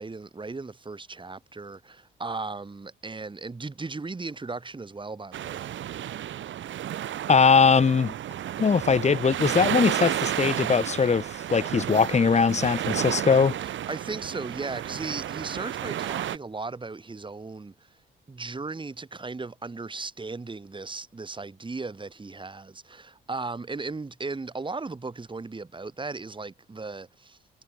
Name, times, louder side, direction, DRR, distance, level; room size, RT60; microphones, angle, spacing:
voice 1, 0.0-5.7 13.6-17.9 18.3-27.4, right 3 dB, 25° right, 7.3 m, -36 dB
sound 1, 5.3-16.4, right 11 dB, 70° right, 6.8 m, -32 dB
voice 2, 7.3-8.1 8.6-13.6, left 5 dB, 35° left, 1.9 m, -21 dB
cardioid pair, 90°, 20 cm